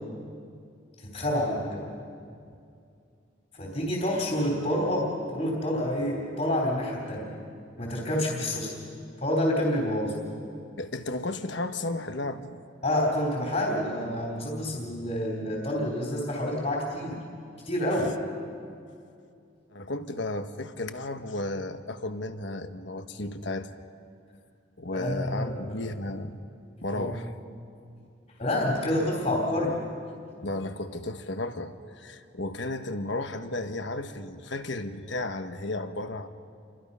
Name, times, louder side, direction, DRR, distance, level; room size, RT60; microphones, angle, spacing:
voice 1, 1.0-1.9 3.5-7.3 7.8-8.7 9.2-10.1 12.8-17.2 17.7-18.2 24.9-25.8 26.9-27.1 28.4-29.7, left 1 dB, 40° left, -3 dB, 3.6 m, -28 dB
voice 2, 10.8-12.6 19.7-23.7 24.8-26.4 26.8-27.3 30.4-36.3, left 2 dB, 65° left, 8 dB, 1.2 m, -34 dB
29.5 x 24.5 x 5.5 m, 2.4 s
head